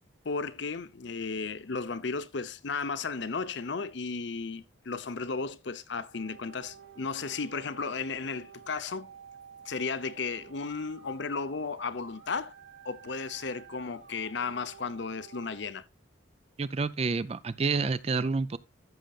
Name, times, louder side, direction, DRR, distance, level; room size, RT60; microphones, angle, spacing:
voice 1, 0.2-9.1 9.6-12.5 12.8-15.8, left 4 dB, 60° left, 0.7 m, -34 dB
sound 1, 6.1-15.7, right 6 dB, 75° right, 2.1 m, -52 dB
voice 2, 16.6-18.6, right 4 dB, 30° right, 0.4 m, -29 dB
14.0 x 6.5 x 2.4 m
head